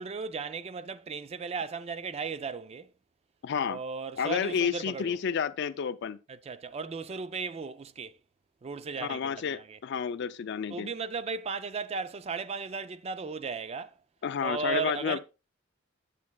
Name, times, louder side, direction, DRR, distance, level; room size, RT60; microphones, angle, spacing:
voice 1, 0.0-2.9 3.7-5.2 6.3-8.2 8.6-9.8 10.7-14.0 14.4-15.2, right 5 dB, 30° right, 0.3 m, -36 dB
voice 2, 3.4-3.8 4.2-6.2 9.0-10.9 14.2-15.2, left 7 dB, 60° left, 0.4 m, -30 dB
8.5 x 7.1 x 2.3 m
head